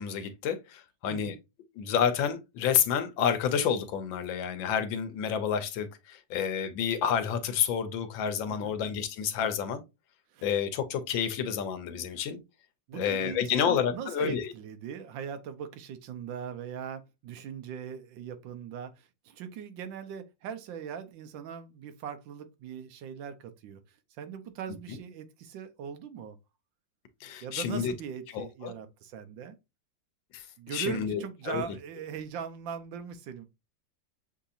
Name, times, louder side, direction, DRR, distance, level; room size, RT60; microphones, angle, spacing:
voice 1, 0.0-1.3 1.8-9.8 10.4-12.4 12.9-14.5 24.9-25.0 27.2-27.9 28.3-28.7 30.3-30.4 30.7-31.6, left 8 dB, 85° left, 1.5 m, -29 dB
voice 2, 12.9-26.4 27.2-29.6 30.6-33.5, right 7 dB, 80° right, 1.4 m, -40 dB
6.8 x 2.8 x 2.4 m
omnidirectional pair, 2.1 m